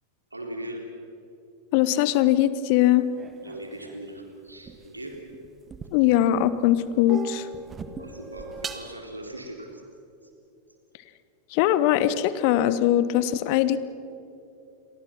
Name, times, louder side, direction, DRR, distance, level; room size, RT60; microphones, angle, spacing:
voice 1, 0.3-0.8 3.4-5.2 8.0-9.8, right 1 dB, 85° right, 2 dB, 3.8 m, -39 dB
voice 2, 1.7-3.1 5.9-7.5 11.5-13.8, left 12 dB, 45° left, 15 dB, 1.1 m, -21 dB
sound 1, 3.2-6.4 6.7-8.9, right 5 dB, 20° right, 1.6 m, -39 dB
29.5 x 23.5 x 6.1 m, 2.8 s
figure-of-eight pair, 90°, 0 cm